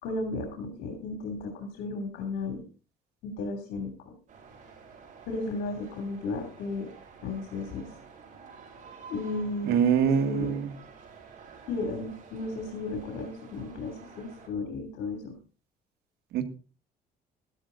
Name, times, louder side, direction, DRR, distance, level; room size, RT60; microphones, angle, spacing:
voice 1, 0.0-2.6 3.2-4.1 5.3-6.9 7.2-7.9 9.1-9.8 10.0-10.5 11.7-15.3, left 3 dB, 80° left, 4 dB, 2.9 m, -34 dB
sound 1, 4.3-14.5, right 5 dB, 50° right, 6.1 m, -50 dB
voice 2, 9.6-10.7 16.3-16.4, right 7 dB, 75° right, 8 dB, 1.9 m, -24 dB
13.5 x 12.5 x 3.9 m, 0.35 s
cardioid pair, 110°, 17 cm